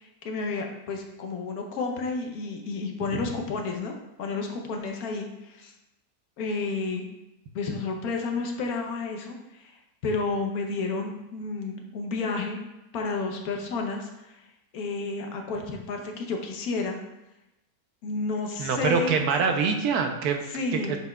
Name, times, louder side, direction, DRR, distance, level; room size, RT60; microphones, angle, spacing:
voice 1, 0.0-5.7 6.4-7.1 7.5-12.6 12.9-17.0 18.0-19.4 20.5-21.0, left 3 dB, 75° left, 3 dB, 1.3 m, -31 dB
voice 2, 18.6-20.5 20.9-21.0, right 6 dB, 85° right, 5 dB, 1.2 m, -24 dB
7.2 x 5.8 x 2.3 m, 0.96 s
omnidirectional pair, 1.6 m